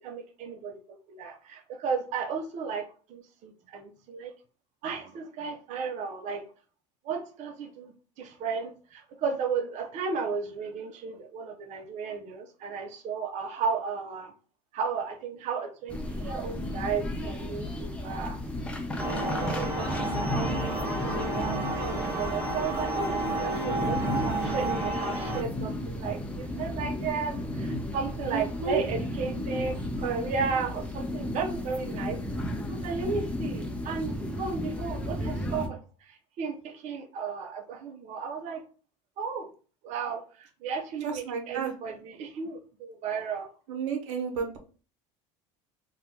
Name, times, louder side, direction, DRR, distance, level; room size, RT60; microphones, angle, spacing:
voice 1, 0.0-4.3 4.8-6.4 7.0-14.3 14.7-18.4 19.2-32.2 32.7-38.6 39.2-39.5 39.8-43.5, right 5 dB, 50° right, 4 dB, 0.6 m, -34 dB
sound 1, 15.9-35.7, left 1 dB, 5° left, 0.6 m, -33 dB
sound 2, 19.0-25.4, right 2 dB, 15° right, 1.4 m, -31 dB
voice 2, 28.3-28.8 41.0-41.7 43.7-44.6, right 5 dB, 85° right, 3 dB, 0.8 m, -31 dB
2.7 x 2.4 x 3.6 m, 0.37 s
supercardioid pair, 95°, 15 cm